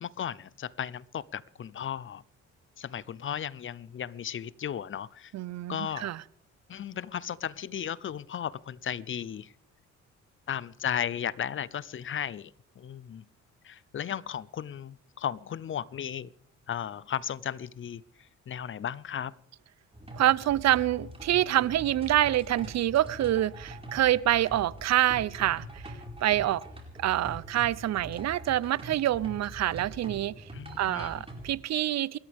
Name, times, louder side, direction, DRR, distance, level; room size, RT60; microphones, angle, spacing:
voice 1, 0.0-2.2 2.8-5.3 5.7-6.1 6.7-9.5 10.5-13.2 13.6-16.3 16.7-18.0 18.5-19.3 30.5-31.1, left 9 dB, 40° left, 0.6 m, -35 dB
voice 2, 5.3-6.2 20.1-25.9 26.2-26.6 27.0-30.3 30.8-32.2, right 13 dB, 60° right, 0.6 m, -26 dB
sound 1, 19.9-31.5, equal, 20° right, 4.7 m, -44 dB
28.0 x 14.0 x 3.5 m
cardioid pair, 90°, 30 cm